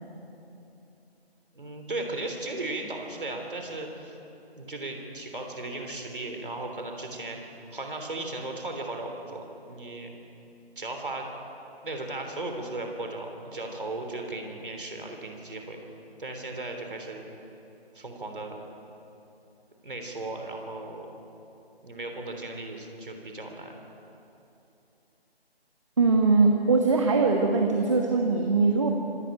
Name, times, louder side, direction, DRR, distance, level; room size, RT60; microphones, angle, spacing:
voice 1, 1.5-4.2 4.5-7.4 7.7-10.1 10.8-11.3 11.8-15.8 16.2-17.2 17.9-18.6 19.8-21.1 21.8-23.7, right 2 dB, 55° right, 3 dB, 3.4 m, -36 dB
voice 2, 26.0-28.9, right 4 dB, 30° right, 2 dB, 1.4 m, -21 dB
26.0 x 13.5 x 8.9 m, 2.9 s
figure-of-eight pair, 155°, 32 cm